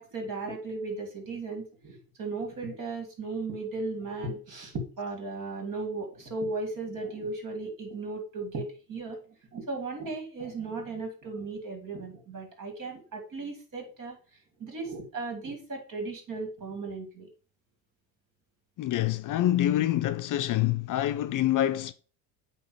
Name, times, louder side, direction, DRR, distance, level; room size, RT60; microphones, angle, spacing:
voice 1, 0.0-9.2 9.5-14.2 14.6-17.3, right 3 dB, 45° right, 2.7 m, -36 dB
voice 2, 18.8-21.9, left 13 dB, 45° left, 0.6 m, -26 dB
8.5 x 3.0 x 4.6 m
supercardioid pair, 95°, 43 cm